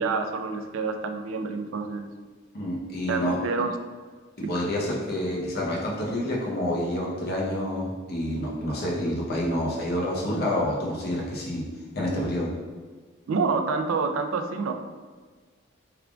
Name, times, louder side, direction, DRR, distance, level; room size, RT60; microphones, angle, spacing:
voice 1, 0.0-2.1 3.1-3.8 13.3-14.7, right 4 dB, 85° right, 6 dB, 0.4 m, -27 dB
voice 2, 2.5-3.4 4.4-11.6 11.9-12.5, left 1 dB, 55° left, -4 dB, 0.8 m, -28 dB
3.6 x 3.4 x 2.3 m, 1.5 s
head